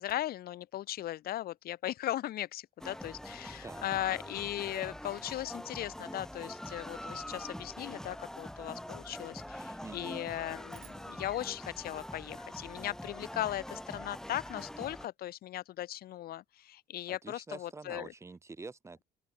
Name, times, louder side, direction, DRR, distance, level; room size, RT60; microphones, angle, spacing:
voice 1, 0.0-18.1, left 13 dB, 65° left, 1.2 m, -38 dB
sound 1, 2.8-15.1, left 1 dB, 5° left, 2.1 m, -44 dB
voice 2, 9.8-10.2 17.1-19.0, right 3 dB, 15° right, 0.7 m, -46 dB
sound 2, 10.7-13.1, right 14 dB, 70° right, 5.4 m, -63 dB
open air
cardioid pair, 110°, 17 cm